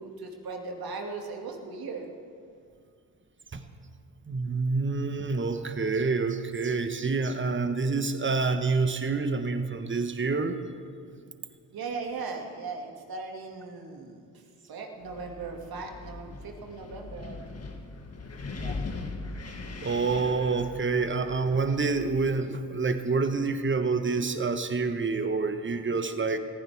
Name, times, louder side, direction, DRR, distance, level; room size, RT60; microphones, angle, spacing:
voice 1, 0.0-2.2 11.7-17.6 18.6-18.8, right 4 dB, 55° right, 2 dB, 2.3 m, -38 dB
voice 2, 4.3-10.6 19.8-26.4, right 4 dB, 25° right, 9 dB, 1.3 m, -27 dB
Wind, 15.0-22.3, left 3 dB, 35° left, 1.9 m, -40 dB
20.5 x 15.0 x 3.5 m, 2.2 s
hypercardioid pair, 50°, 42 cm